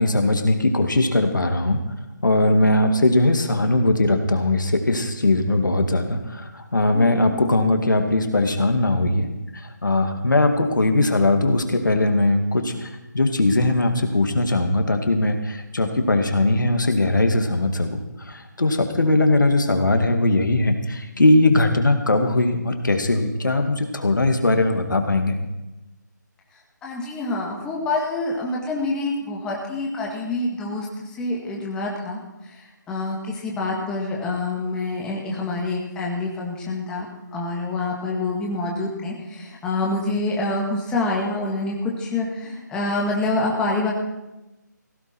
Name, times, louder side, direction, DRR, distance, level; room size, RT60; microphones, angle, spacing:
voice 1, 0.0-1.8 2.2-9.3 9.5-12.9 13.1-25.4, left 2 dB, 80° left, 5 dB, 2.2 m, -20 dB
voice 2, 6.9-7.3 26.8-37.1 37.3-43.9, left 2 dB, 10° left, -2 dB, 1.8 m, -27 dB
16.5 x 14.5 x 4.5 m, 1.0 s
figure-of-eight pair, 160°, 10 cm